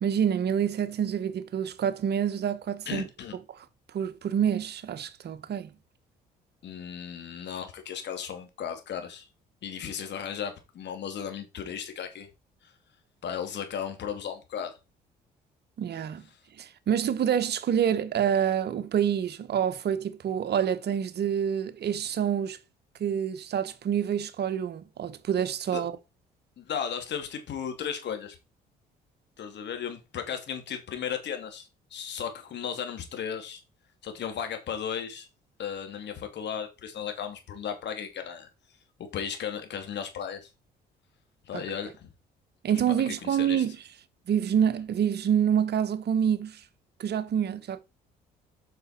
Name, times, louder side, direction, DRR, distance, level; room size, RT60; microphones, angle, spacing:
voice 1, 0.0-3.0 3.5-3.6 3.9-5.7 15.8-16.2 16.6-22.6 23.0-25.9 41.5-41.6 42.6-43.8 44.3-46.6 47.0-47.8, right 8 dB, 55° right, 1.1 m, -27 dB
voice 2, 2.9-3.4 6.6-9.3 9.6-12.3 12.6-12.7 13.2-14.8 25.7-25.8 26.6-28.4 29.4-33.6 34.0-35.3 35.6-38.5 39.0-40.5 41.5-42.1 43.1-43.6, left 8 dB, 60° left, 2.6 m, -35 dB
7.9 x 6.1 x 4.4 m
hypercardioid pair, 55°, 20 cm